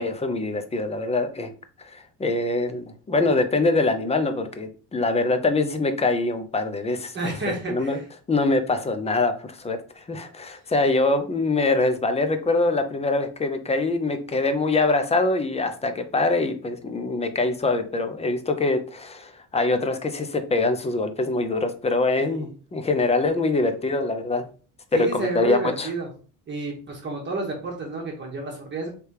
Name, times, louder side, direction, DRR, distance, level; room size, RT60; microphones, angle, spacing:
voice 1, 0.0-1.5 1.9-7.1 7.7-8.0 8.3-24.4 24.9-25.9, left 3 dB, 20° left, 8 dB, 0.5 m, -24 dB
voice 2, 7.1-8.0 22.2-22.4 24.9-26.1 26.5-28.9, right 3 dB, 30° right, -1 dB, 1.2 m, -30 dB
3.3 x 3.3 x 4.6 m, 0.39 s
cardioid pair, 135°, 36 cm